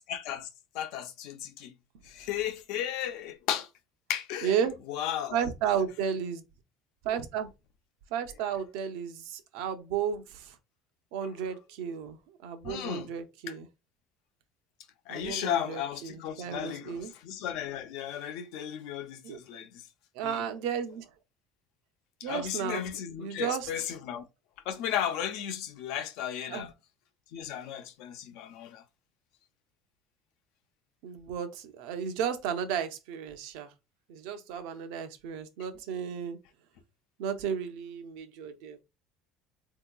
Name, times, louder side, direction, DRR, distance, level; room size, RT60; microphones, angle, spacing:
voice 1, 0.1-0.5 0.7-1.7 2.0-3.7 4.1-4.5 4.9-5.4 11.2-11.4 12.6-13.1 13.5-13.6 15.1-19.7 20.2-20.4 22.2-24.2 24.7-26.7 27.3-28.8, left 10 dB, 70° left, 0.5 m, -35 dB
voice 2, 4.4-4.7 5.3-6.4 7.0-7.5 8.1-10.6 11.1-13.7 15.1-17.1 19.2-19.4 20.1-21.1 22.2-22.9 23.2-23.7 26.5-26.7 31.0-33.7 34.1-36.4 37.2-38.8, right 8 dB, 80° right, 0.6 m, -33 dB
3.6 x 2.8 x 2.3 m
cardioid pair, 150°, 0 cm